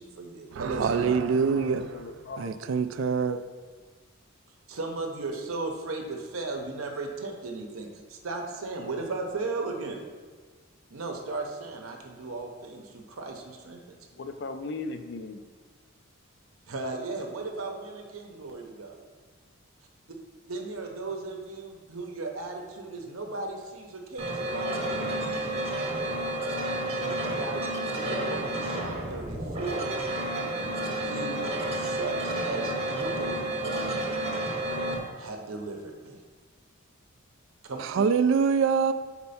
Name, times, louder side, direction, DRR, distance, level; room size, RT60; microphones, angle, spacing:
voice 1, 0.0-1.3 4.7-10.0 10.9-14.1 16.7-19.0 20.5-25.0 26.9-29.9 31.0-31.4 31.7-34.1 35.2-36.2 37.7-38.0, right 3 dB, 80° right, 2 dB, 0.8 m, -36 dB
voice 2, 0.5-1.9 2.4-3.4 37.8-38.9, right 6 dB, 60° right, 12 dB, 0.3 m, -25 dB
voice 3, 1.4-3.5 14.1-15.5, left 3 dB, 55° left, 8 dB, 0.4 m, -39 dB
sound 1, 24.2-35.0, right 1 dB, 30° right, 0.8 m, -30 dB
4.4 x 4.3 x 5.6 m, 1.4 s
head